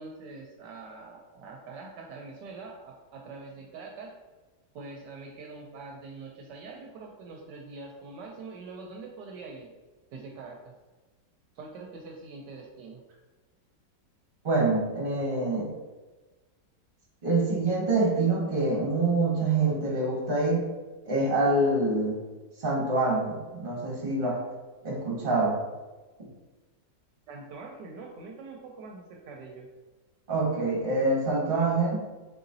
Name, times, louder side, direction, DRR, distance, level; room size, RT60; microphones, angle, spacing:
voice 1, 0.0-4.1 4.7-9.7 10.1-10.6 11.6-13.0 27.3-29.7, right 3 dB, 75° right, 0 dB, 1.2 m, -44 dB
voice 2, 14.4-15.7 17.2-20.7 21.0-22.2 22.6-24.4 24.8-25.6 30.3-32.0, right 2 dB, 30° right, -4 dB, 1.3 m, -25 dB
4.2 x 3.9 x 2.6 m, 1.2 s
omnidirectional pair, 1.9 m